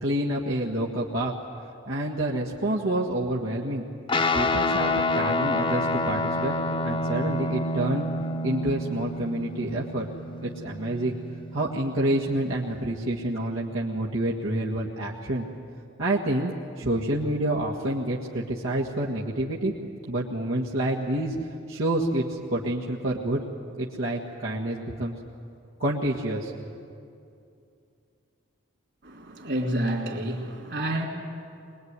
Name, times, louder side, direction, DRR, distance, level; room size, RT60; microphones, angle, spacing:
voice 1, 0.0-1.3 1.9-3.9 4.3-6.5 6.8-8.1 8.4-10.1 10.4-11.2 11.5-15.5 16.0-19.7 20.1-21.3 21.7-22.2 22.5-23.4 23.8-25.1 25.8-26.7, right 1 dB, 80° right, -4 dB, 1.8 m, -28 dB
Guitar, 4.1-12.8, left 2 dB, 25° left, 0.9 m, -28 dB
voice 2, 29.0-31.1, right 1 dB, 55° right, 1 dB, 3.3 m, -29 dB
23.5 x 20.5 x 9.7 m, 2.5 s
head